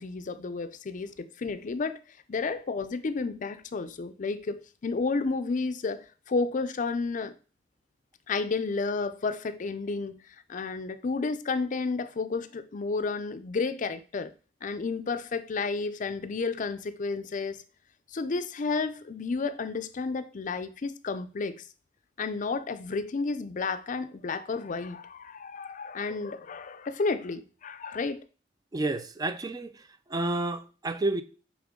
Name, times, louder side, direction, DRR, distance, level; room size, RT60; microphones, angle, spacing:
voice 1, 0.0-2.0 2.3-7.3 8.3-10.2 10.5-14.3 14.6-17.6 18.1-21.7 22.2-28.2, left 4 dB, 45° left, 0.5 m, -31 dB
voice 2, 28.7-29.7 30.1-31.2, right 2 dB, 20° right, 0.4 m, -30 dB
8.6 x 3.5 x 3.7 m
head